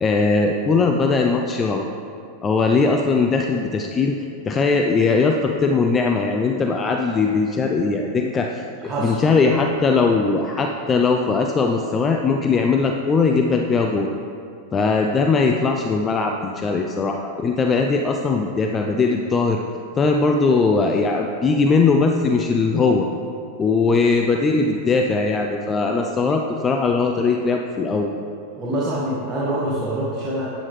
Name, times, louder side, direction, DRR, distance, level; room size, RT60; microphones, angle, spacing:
voice 1, 0.0-1.9 2.4-4.2 4.5-8.6 9.0-14.1 14.7-19.6 20.0-23.1 23.6-28.1, left 4 dB, 25° left, 3 dB, 0.5 m, -20 dB
voice 2, 28.6-30.5, right 1 dB, 20° right, -8 dB, 1.8 m, -25 dB
10.5 x 8.5 x 3.3 m, 2.6 s
hypercardioid pair, 105°, 0 cm